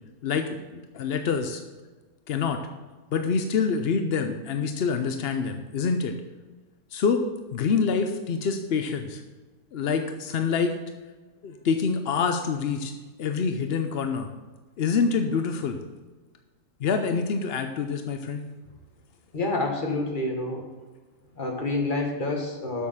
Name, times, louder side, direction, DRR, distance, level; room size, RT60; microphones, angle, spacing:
voice 1, 0.2-1.6 2.3-2.6 3.1-6.1 6.9-7.2 7.5-9.2 9.7-10.8 11.4-12.9 13.2-14.3 14.8-15.8 16.8-18.4, left 5 dB, 65° left, 6 dB, 0.6 m, -26 dB
voice 2, 19.3-20.6 21.3-22.9, left 2 dB, 30° left, 2 dB, 1.6 m, -28 dB
7.5 x 6.4 x 7.2 m, 1.3 s
omnidirectional pair, 1.8 m